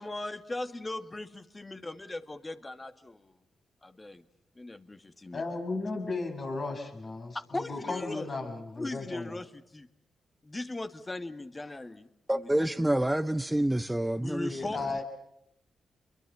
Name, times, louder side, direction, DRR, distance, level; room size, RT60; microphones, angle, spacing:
voice 1, 0.0-3.4 3.8-4.2 4.6-5.4 7.5-8.3 8.8-9.9 10.4-12.9 14.2-14.8, left 2 dB, 25° left, 2.1 m, -39 dB
voice 2, 5.3-9.3 14.4-15.0, left 3 dB, 55° left, 7.3 m, -35 dB
voice 3, 12.3-14.6, right 1 dB, 10° right, 1.0 m, -27 dB
28.0 x 23.0 x 7.1 m
supercardioid pair, 45°, 0 cm